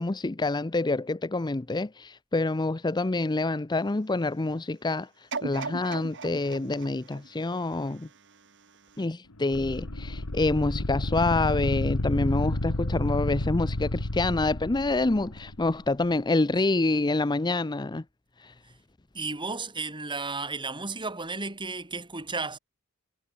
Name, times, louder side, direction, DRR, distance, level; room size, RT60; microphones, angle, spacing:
voice 1, 0.0-5.1 5.4-8.1 9.0-18.0 18.4-18.5, left 2 dB, 20° left, 0.6 m, -27 dB
sound 1, 5.3-8.4 8.9-9.0, right 3 dB, 60° right, 4.2 m, -38 dB
sound 2, 9.5-15.7, left 1 dB, 85° left, 2.3 m, -30 dB
voice 2, 19.1-22.6, right 3 dB, 20° right, 6.2 m, -33 dB
head